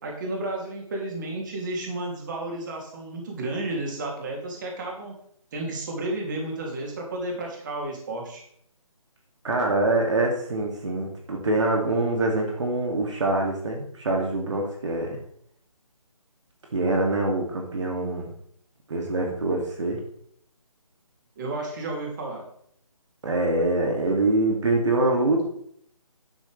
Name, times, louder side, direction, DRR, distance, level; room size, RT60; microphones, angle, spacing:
voice 1, 0.0-5.1 5.5-8.4 21.4-22.4, right 2 dB, 35° right, -1 dB, 2.9 m, -32 dB
voice 2, 9.4-15.2 16.7-18.3 18.9-20.0 23.2-25.4, right 2 dB, 55° right, 0 dB, 2.6 m, -24 dB
12.0 x 10.0 x 3.4 m, 0.67 s
figure-of-eight pair, 165°, 18 cm